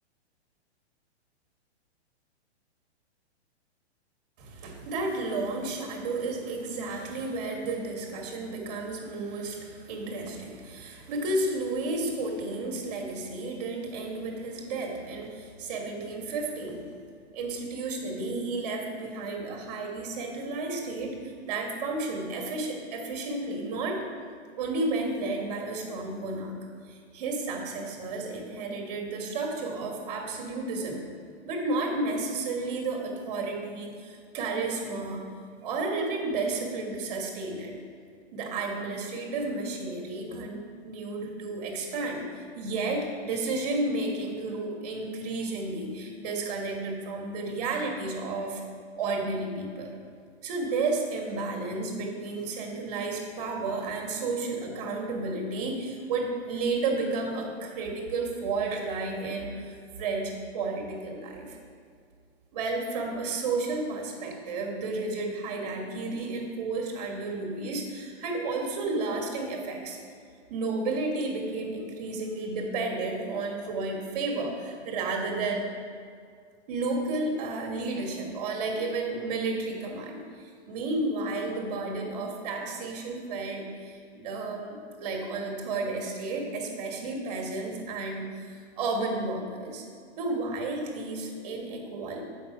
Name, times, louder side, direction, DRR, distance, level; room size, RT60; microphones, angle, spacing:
voice 1, 4.4-16.9 17.3-24.0 24.6-26.5 26.9-31.0 31.4-35.2 35.6-37.7 38.3-48.6 48.9-49.9 50.4-61.6 62.5-70.0 70.5-75.7 76.7-89.8 90.2-92.2, right 3 dB, 35° right, 1 dB, 1.4 m, -32 dB
7.6 x 5.4 x 5.8 m, 2.1 s
hypercardioid pair, 175°, 34 cm